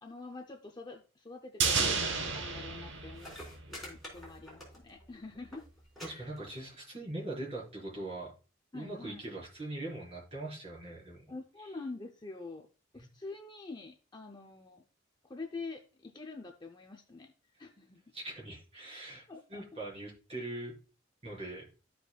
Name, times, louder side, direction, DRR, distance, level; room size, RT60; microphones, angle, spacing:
voice 1, 0.0-3.4 3.7-5.7 6.1-6.3 8.7-9.2 11.3-12.7 12.9-14.8 15.2-17.3 17.6-18.0 19.3-19.6, left 3 dB, 20° left, 4 dB, 0.6 m, -46 dB
sound 1, 1.6-4.0 4.3-4.4, right 5 dB, 65° right, 1.0 m, -32 dB
sound 2, 2.9-3.0 3.1-5.1 5.3-5.6 6.0-6.1 6.4-6.9 7.7-7.8, left 1 dB, ahead, 3.7 m, -47 dB
voice 2, 6.0-8.3 8.7-11.3 13.0-13.1 18.1-19.2 19.5-20.7 21.2-21.6, right 2 dB, 30° right, -5 dB, 4.6 m, -41 dB
13.5 x 5.0 x 2.3 m, 0.34 s
head